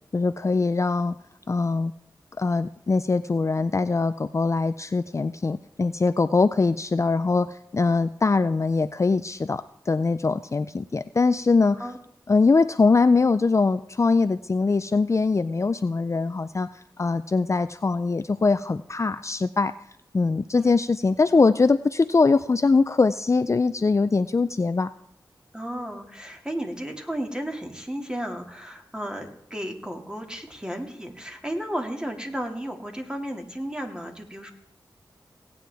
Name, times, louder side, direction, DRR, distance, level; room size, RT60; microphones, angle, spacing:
voice 1, 0.1-1.2 1.5-1.9 2.4-11.8 12.3-16.7 17.0-19.7 20.1-24.9, left 4 dB, 35° left, 12 dB, 0.4 m, -22 dB
voice 2, 25.5-34.5, equal, 10° right, 3 dB, 2.2 m, -33 dB
17.5 x 9.2 x 3.5 m, 0.75 s
cardioid pair, 45°, 8 cm